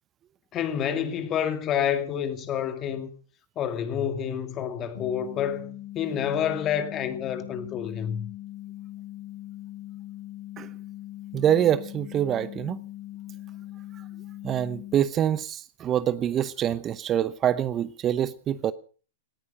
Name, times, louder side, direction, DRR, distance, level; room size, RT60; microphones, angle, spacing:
voice 1, 0.5-3.1 3.6-8.3, left 9 dB, 30° left, 2.4 m, -28 dB
sound 1, 4.9-15.0, left 15 dB, 80° left, 5.4 m, -41 dB
voice 2, 11.3-12.8 14.4-18.7, right 10 dB, 30° right, 0.8 m, -25 dB
18.5 x 14.0 x 5.2 m
hypercardioid pair, 120°, 0 cm